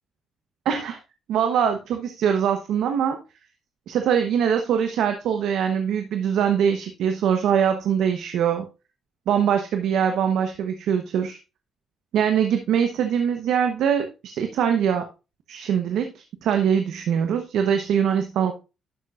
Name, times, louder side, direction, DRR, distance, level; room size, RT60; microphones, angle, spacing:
voice 1, 0.6-1.0 1.3-3.2 3.9-8.7 9.3-11.4 12.1-15.1 15.5-18.5, right 8 dB, 80° right, 6 dB, 0.9 m, -23 dB
11.5 x 6.6 x 2.5 m, 0.29 s
cardioid pair, 90°, 0 cm